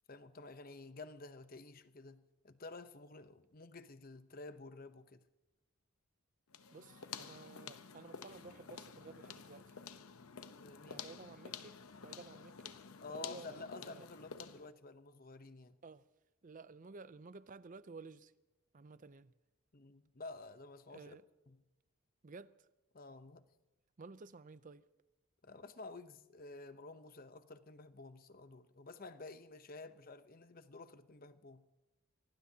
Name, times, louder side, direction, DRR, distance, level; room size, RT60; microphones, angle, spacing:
voice 1, 0.1-5.2 10.6-11.0 13.0-15.8 19.7-21.2 21.5-21.6 22.9-23.5 25.4-31.6, left 3 dB, 40° left, 0.8 m, -51 dB
sound 1, 6.5-14.7, left 7 dB, 75° left, 0.8 m, -50 dB
voice 2, 6.7-9.8 10.9-12.8 13.1-14.1 15.8-16.0 16.4-18.3 18.7-19.3 20.9-21.2 22.2-22.7 24.0-24.9, right 4 dB, 35° right, 0.5 m, -54 dB
25.0 x 18.5 x 2.8 m
head